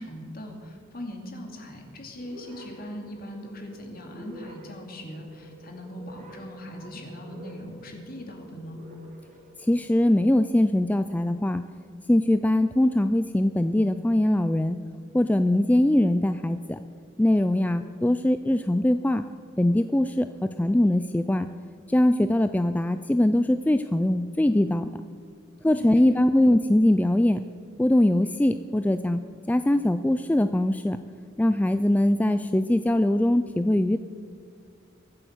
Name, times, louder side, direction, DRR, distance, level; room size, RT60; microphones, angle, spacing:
voice 1, 0.0-8.8 25.6-26.2, left 1 dB, 50° left, 2 dB, 2.5 m, -40 dB
sound 1, 2.2-10.2, right 1 dB, 45° right, 3.0 m, -48 dB
voice 2, 9.6-11.6 12.1-14.8 15.1-16.8 17.2-19.2 19.6-21.5 21.9-24.9 25.6-27.4 27.8-29.2 29.5-31.0 31.4-34.0, left 1 dB, 10° left, 10 dB, 0.3 m, -22 dB
23.0 x 7.8 x 6.2 m, 2.2 s
head